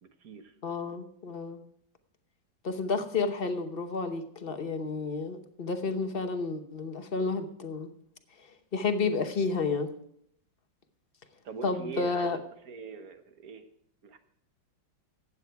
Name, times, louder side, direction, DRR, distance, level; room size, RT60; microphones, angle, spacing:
voice 1, 0.0-0.5 11.4-12.4 12.6-13.6 14.0-14.2, right 6 dB, 55° right, 8 dB, 1.5 m, -42 dB
voice 2, 0.6-1.6 2.6-7.9 8.4-8.5 8.7-9.9 11.6-12.4, left 4 dB, 40° left, 7 dB, 0.8 m, -31 dB
14.5 x 9.3 x 4.6 m, 0.72 s
omnidirectional pair, 2.1 m